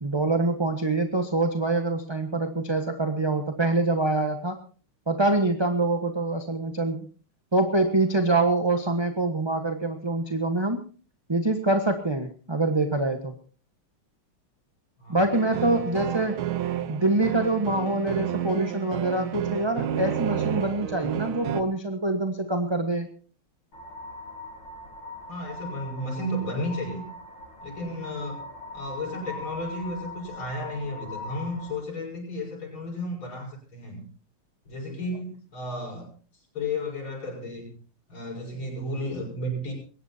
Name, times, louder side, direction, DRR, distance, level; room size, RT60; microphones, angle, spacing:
voice 1, 0.0-4.6 5.1-7.1 7.5-10.8 11.3-13.3 15.1-16.4 16.9-23.1, right 2 dB, 15° right, 5 dB, 1.0 m, -25 dB
voice 2, 15.0-15.3 15.6-15.9 25.3-27.1 27.6-28.4 28.7-34.1 34.7-36.1 36.5-37.7 38.1-39.7, left 1 dB, 65° left, -5 dB, 6.8 m, -33 dB
sound 1, 15.3-21.6, right 10 dB, 70° right, 1.8 m, -30 dB
sound 2, 23.7-31.8, left 2 dB, 85° left, 6.4 m, -41 dB
22.0 x 18.5 x 2.8 m, 0.39 s
omnidirectional pair, 2.3 m